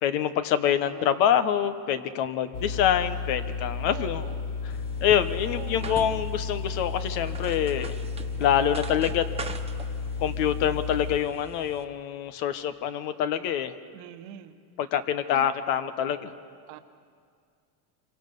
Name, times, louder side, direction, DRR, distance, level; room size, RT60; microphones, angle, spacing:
voice 1, 0.0-4.3 4.6-4.7 5.0-7.9 8.4-9.2 10.2-13.7 14.8-16.3, left 9 dB, 85° left, 10 dB, 1.2 m, -26 dB
voice 2, 0.6-1.1 3.9-4.4 5.4-6.3 13.9-14.6 15.3-15.5 16.7-16.8, right 13 dB, 80° right, 8 dB, 1.5 m, -43 dB
sound 1, 2.5-11.2, left 5 dB, 50° left, 1.4 m, -33 dB
sound 2, 4.7-11.8, right 4 dB, 10° right, 1.1 m, -43 dB
26.5 x 24.5 x 5.4 m, 2.2 s
supercardioid pair, 120°, 48 cm